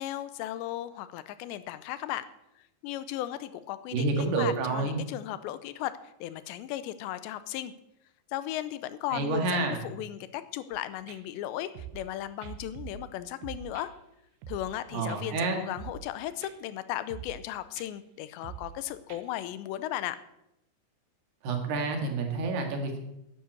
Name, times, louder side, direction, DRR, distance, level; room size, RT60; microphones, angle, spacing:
voice 1, 0.0-2.3 2.6-7.7 8.3-9.6 9.8-13.9 14.5-20.2, left 13 dB, 85° left, 14 dB, 2.9 m, -36 dB
voice 2, 3.9-5.0 9.1-9.8 14.9-15.6 21.4-23.0, right 3 dB, 70° right, 3 dB, 3.8 m, -29 dB
sound 1, 10.7-10.8 11.1-11.2 11.7-12.1 12.4-13.1 13.4-13.9 14.4-14.8 15.1-15.2 15.8-16.1 16.4-16.5 17.1-17.5 17.8-17.9 18.4-18.8 19.1-19.2, right 9 dB, 85° right, 3.3 m, -44 dB
11.0 x 10.5 x 7.9 m, 0.84 s
omnidirectional pair, 5.1 m